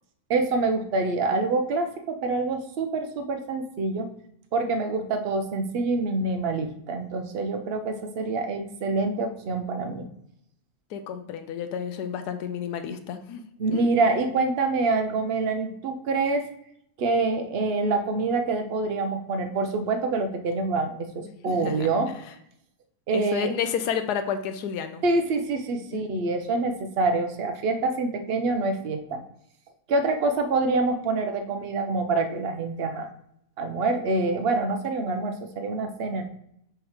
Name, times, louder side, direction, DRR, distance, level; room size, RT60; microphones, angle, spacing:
voice 1, 0.3-4.1 4.5-10.0 13.6-16.5 17.0-22.1 23.1-23.5 25.0-29.2 29.9-33.1 33.6-36.2, right 3 dB, 50° right, 6 dB, 0.8 m, -26 dB
voice 2, 10.9-13.4 13.7-13.9 21.2-21.9 23.1-25.0 25.9-26.2, left 7 dB, 85° left, 9 dB, 1.2 m, -31 dB
6.3 x 3.1 x 4.9 m, 0.73 s
omnidirectional pair, 1.7 m